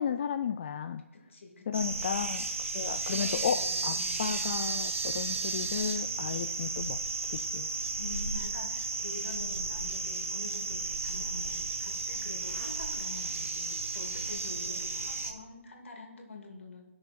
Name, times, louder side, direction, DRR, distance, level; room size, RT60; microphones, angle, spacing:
voice 1, 0.0-1.0 1.7-2.5 2.7-7.0 7.3-7.7, left 8 dB, 30° left, 9 dB, 0.3 m, -33 dB
voice 2, 1.1-2.1 2.7-4.5 8.0-16.9, left 3 dB, 60° left, 2 dB, 2.6 m, -46 dB
sound 1, 1.7-15.3, right 3 dB, 65° right, 1.5 m, -33 dB
16.5 x 6.3 x 4.3 m, 1.1 s
figure-of-eight pair, 150°, 7 cm